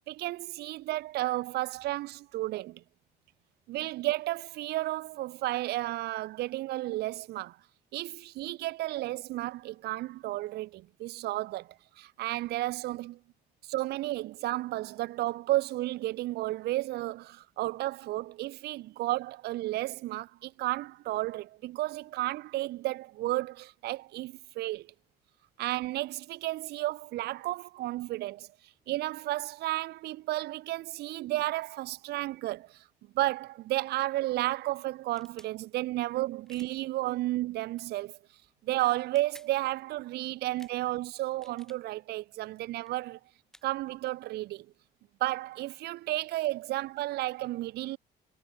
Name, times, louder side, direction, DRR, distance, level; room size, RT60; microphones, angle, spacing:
voice 1, 0.1-2.8 3.7-7.6 7.9-13.2 13.6-24.9 25.6-28.5 28.9-32.8 33.1-38.2 38.6-43.2 43.6-44.7 45.2-48.0, right 17 dB, 75° right, 0.8 m, -32 dB
sound 1, 35.0-35.5 36.5-36.8 37.7-38.0 39.0-39.5 40.5-40.8 41.3-41.8 42.7-42.9 43.5-43.7 45.0-45.1 45.3-46.6, equal, 5° left, 2.9 m, -57 dB
cardioid pair, 110°, 17 cm